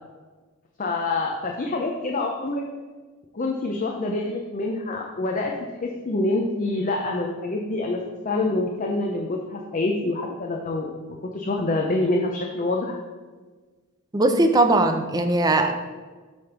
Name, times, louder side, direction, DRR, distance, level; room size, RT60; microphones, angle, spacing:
voice 1, 0.8-2.6 3.3-5.5 5.8-13.0, left 2 dB, 35° left, 1 dB, 0.6 m, -26 dB
voice 2, 14.1-15.7, right 2 dB, 20° right, 6 dB, 0.5 m, -19 dB
8.2 x 3.4 x 5.8 m, 1.4 s
head